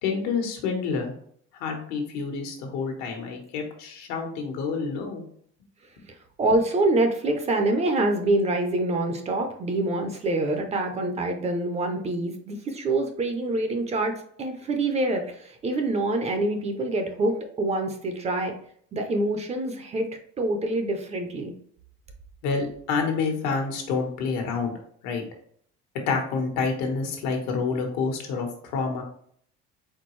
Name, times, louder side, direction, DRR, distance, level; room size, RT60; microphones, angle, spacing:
voice 1, 0.0-1.1 1.6-5.2 22.4-24.7 25.0-25.2 26.1-29.0, left 5 dB, 75° left, 3 dB, 1.3 m, -28 dB
voice 2, 6.1-14.1 14.4-18.5 18.9-20.1 20.4-21.5, right 2 dB, 25° right, 5 dB, 0.5 m, -26 dB
4.3 x 3.9 x 3.1 m, 0.62 s
cardioid pair, 160°, 29 cm